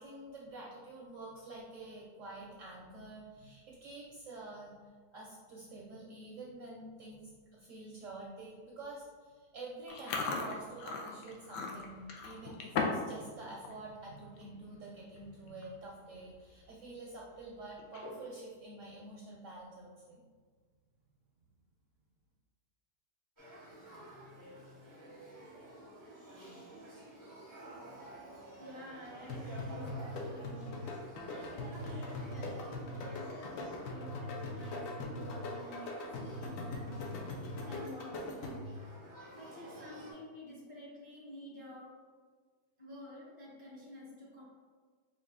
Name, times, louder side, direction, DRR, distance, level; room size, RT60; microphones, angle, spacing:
voice 1, 0.0-4.8 5.1-20.2, right 2 dB, 70° right, -3 dB, 0.7 m, -48 dB
Chewing mastication, 9.9-13.1 13.4-13.8 14.2-14.4 15.2-15.3 15.5-15.8 16.2-16.3 17.8-18.4, left 4 dB, 90° left, 1.3 m, -37 dB
Male speech man speaking / Child speech kid speaking / Conversation, 23.4-40.1, right 1 dB, 25° right, 0.4 m, -51 dB
voice 2, 28.6-37.4 37.6-38.6 39.3-42.0 42.8-44.4, left 1 dB, 35° left, -6 dB, 0.5 m, -50 dB
sound 1, 29.3-38.8, left 2 dB, 65° left, 0.9 m, -41 dB
4.9 x 2.4 x 3.5 m, 1.5 s
omnidirectional pair, 1.8 m